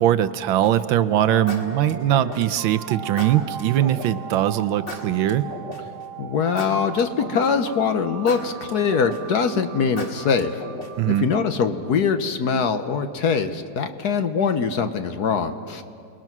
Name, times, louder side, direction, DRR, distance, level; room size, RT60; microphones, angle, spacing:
voice 1, 0.0-5.4 11.0-11.3, right 11 dB, 80° right, 12 dB, 1.5 m, -21 dB
sound 1, 0.6-0.9 1.5-2.6 3.2-4.1 4.9-6.0 6.6-7.7 8.3-9.4 10.0-11.1, left 2 dB, 35° left, 2.5 m, -36 dB
sound 2, 1.0-11.9, right 8 dB, 60° right, 1.4 m, -39 dB
voice 2, 6.2-10.6 11.2-15.8, left 6 dB, 60° left, 8 dB, 1.3 m, -23 dB
28.5 x 20.5 x 6.1 m, 2.4 s
omnidirectional pair, 2.1 m